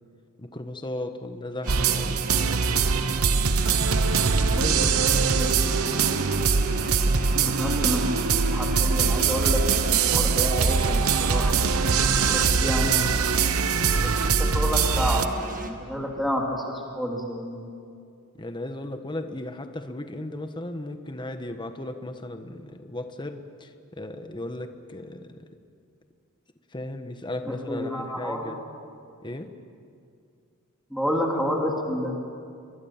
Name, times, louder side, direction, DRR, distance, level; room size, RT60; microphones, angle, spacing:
voice 1, 0.4-2.7 3.8-5.8 7.0-7.5 11.8-12.5 18.4-25.5 26.7-28.6 29.2-29.5, left 1 dB, 20° left, 7 dB, 1.4 m, -36 dB
sound 1, 1.6-15.7, right 1 dB, 40° right, 2.1 m, -36 dB
sound 2, 1.7-15.3, right 5 dB, 85° right, 1.0 m, -22 dB
voice 2, 4.6-6.5 7.4-8.0 8.5-11.6 12.3-13.6 14.0-17.7 27.4-28.5 30.9-32.1, equal, ahead, -1 dB, 3.0 m, -30 dB
29.5 x 23.0 x 7.4 m, 2.4 s
head